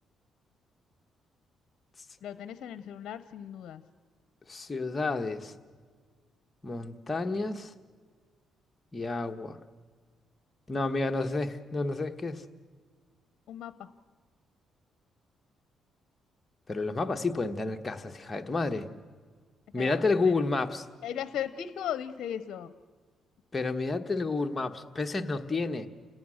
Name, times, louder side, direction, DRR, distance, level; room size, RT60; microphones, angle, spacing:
voice 1, 2.2-3.8 13.5-13.7 19.7-19.9 21.0-22.7 24.1-24.3, left 9 dB, 70° left, 13 dB, 0.7 m, -37 dB
voice 2, 4.5-5.5 6.6-7.7 8.9-9.6 10.7-12.4 16.7-18.9 19.7-20.9 23.5-25.9, left 3 dB, 25° left, 5 dB, 1.3 m, -30 dB
29.5 x 17.5 x 6.5 m, 1.5 s
cardioid pair, 90°, 0 cm